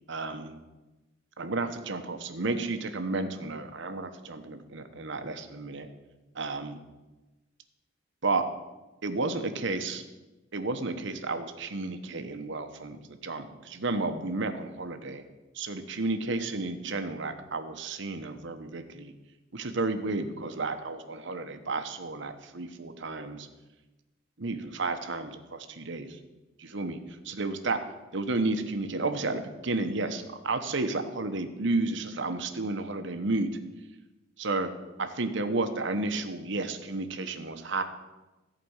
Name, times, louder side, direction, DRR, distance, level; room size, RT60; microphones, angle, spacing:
voice 1, 0.1-0.6 1.4-5.9 6.3-6.8 8.2-8.5 9.0-10.0 10.5-15.2 15.5-19.1 19.5-23.5 24.4-26.2 26.6-27.0 27.2-27.8 28.1-33.5 34.4-34.7 35.0-37.8, right 3 dB, 65° right, 8 dB, 1.1 m, -32 dB
14.5 x 5.2 x 8.8 m, 1.1 s
head